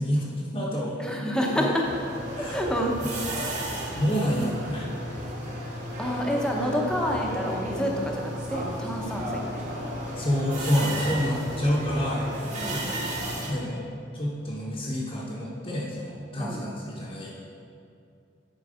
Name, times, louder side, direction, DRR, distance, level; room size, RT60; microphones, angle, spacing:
voice 1, 0.0-1.2 1.6-1.8 2.4-2.6 3.0-3.1 3.4-3.5 3.9-5.0 10.1-13.8 14.1-17.4, equal, 30° left, -7 dB, 0.9 m, -28 dB
voice 2, 1.0-1.8 2.4-3.0 3.8-4.0 6.0-9.6 12.6-13.1 16.4-16.6, equal, 5° left, -1 dB, 0.9 m, -28 dB
sound 1, 1.8-13.5, right 1 dB, 40° right, 1.6 m, -33 dB
10.5 x 4.7 x 5.0 m, 2.5 s
head